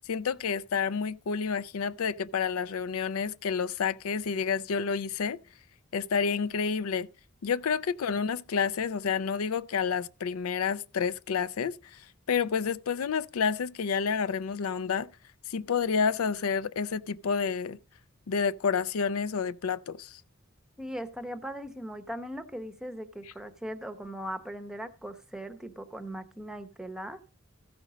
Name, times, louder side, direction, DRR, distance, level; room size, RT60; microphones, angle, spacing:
voice 1, 0.1-5.4 5.9-7.1 7.4-15.1 15.5-17.8 18.3-20.2, left 6 dB, 85° left, 0.5 m, -29 dB
voice 2, 20.8-27.2, equal, 5° right, 0.7 m, -39 dB
14.5 x 5.2 x 5.0 m
head